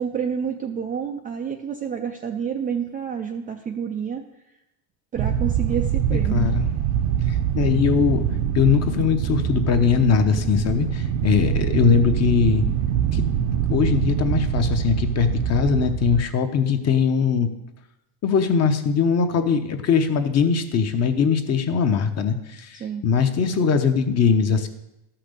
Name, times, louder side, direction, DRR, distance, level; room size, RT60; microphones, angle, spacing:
voice 1, 0.0-4.2 5.1-6.5 22.7-23.0, right 7 dB, 20° right, 3 dB, 0.4 m, -29 dB
sound 1, 5.2-16.2, right 9 dB, 55° right, 0.7 m, -24 dB
voice 2, 6.3-6.6 7.6-8.2 8.5-12.6 13.1-13.2 13.7-17.5 18.2-24.7, left 6 dB, 35° left, 8 dB, 0.9 m, -21 dB
12.5 x 5.9 x 6.6 m, 0.90 s
cardioid pair, 150°, 47 cm